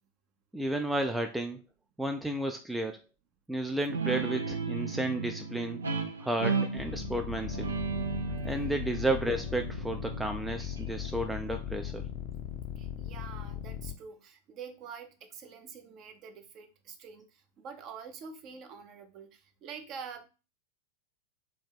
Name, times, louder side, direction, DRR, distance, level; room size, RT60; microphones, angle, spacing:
voice 1, 0.5-1.6 2.0-3.0 3.5-5.8 6.2-7.7 8.4-12.0, right 1 dB, 5° right, 4 dB, 0.4 m, -32 dB
Guitar, 3.9-11.1, right 5 dB, 75° right, 0.6 m, -35 dB
sound 1, 6.8-13.9, left 10 dB, 40° left, 0.6 m, -38 dB
voice 2, 12.8-20.3, right 6 dB, 35° right, 7 dB, 0.7 m, -46 dB
3.5 x 2.6 x 4.6 m, 0.31 s
figure-of-eight pair, 90°, 0 cm